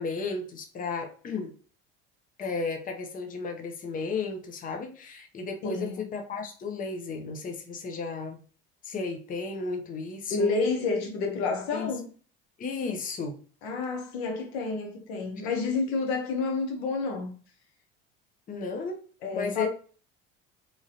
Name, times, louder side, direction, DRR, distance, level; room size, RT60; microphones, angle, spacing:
voice 1, 0.0-1.5 2.4-8.4 8.8-10.5 11.7-11.9 12.6-13.4 18.5-19.0 19.3-19.7, left 4 dB, 30° left, 0.7 m, -34 dB
voice 2, 5.6-6.0 10.3-12.1 13.6-17.3 19.2-19.7, left 4 dB, 80° left, 0.9 m, -29 dB
3.1 x 2.4 x 2.7 m
supercardioid pair, 85°, 30 cm